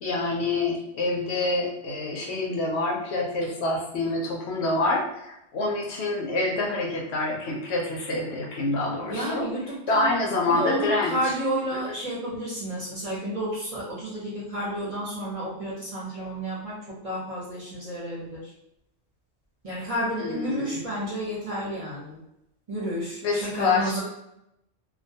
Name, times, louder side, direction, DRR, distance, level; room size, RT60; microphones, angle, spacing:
voice 1, 0.0-9.5 9.9-11.2 20.2-20.8 23.2-24.0, left 2 dB, 70° left, -2 dB, 0.8 m, -27 dB
voice 2, 9.1-10.1 10.5-18.5 19.6-22.2 22.7-24.0, right 1 dB, 35° right, -7 dB, 0.7 m, -31 dB
2.3 x 2.2 x 2.6 m, 0.84 s
omnidirectional pair, 1.2 m